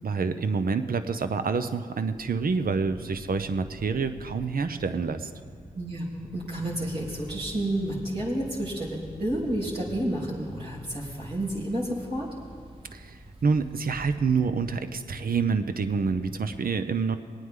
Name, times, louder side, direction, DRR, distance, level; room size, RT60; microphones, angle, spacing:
voice 1, 0.0-5.3 12.9-17.2, right 5 dB, 60° right, 9 dB, 0.7 m, -27 dB
sound 1, 2.1-16.5, right 1 dB, 15° right, 2.4 m, -47 dB
sound 2, 4.4-14.2, right 1 dB, 35° right, 2.1 m, -50 dB
voice 2, 5.7-12.3, right 1 dB, 75° right, -8 dB, 3.3 m, -30 dB
20.0 x 9.2 x 3.8 m, 2.2 s
cardioid pair, 45°, 17 cm